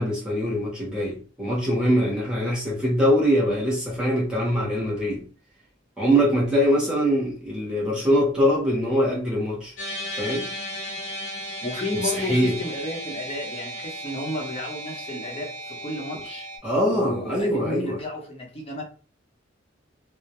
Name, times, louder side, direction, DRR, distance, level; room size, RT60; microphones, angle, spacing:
voice 1, 0.0-5.2 6.0-9.7 10.2-10.5 12.0-12.6 16.6-18.0, equal, 5° right, 0.8 m, -23 dB
sound 1, 9.8-16.6, right 1 dB, 80° left, 0.7 m, -35 dB
voice 2, 11.6-16.5 16.9-18.8, left 1 dB, 30° left, 0.8 m, -32 dB
2.2 x 2.1 x 2.8 m
head